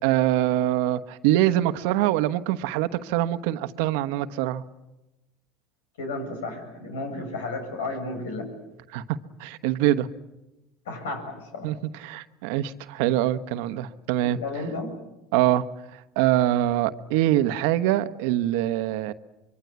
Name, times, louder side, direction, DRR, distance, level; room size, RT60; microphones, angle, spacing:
voice 1, 0.0-4.6 8.9-10.1 11.6-11.8 12.0-14.4 15.3-15.6 16.2-19.1, right 13 dB, 75° right, 11 dB, 1.2 m, -24 dB
voice 2, 6.0-8.5 10.9-11.7 14.2-14.9, left 2 dB, 90° left, 6 dB, 7.4 m, -33 dB
25.5 x 23.5 x 8.2 m, 1.0 s
hypercardioid pair, 90°, 0 cm